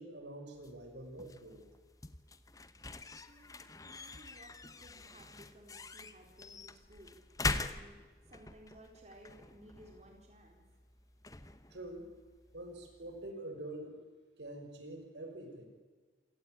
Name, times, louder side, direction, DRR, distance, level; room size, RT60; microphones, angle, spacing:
voice 1, 0.0-1.6 11.7-12.1 12.5-14.0 14.4-15.7, right 1 dB, 80° right, 4 dB, 5.6 m, -46 dB
sound 1, 0.5-13.3, left 3 dB, 20° left, 1.0 m, -44 dB
voice 2, 3.3-7.2 7.7-8.0 8.3-10.6, right 1 dB, 40° right, 1 dB, 4.1 m, -58 dB
27.5 x 18.0 x 9.2 m, 1.4 s
head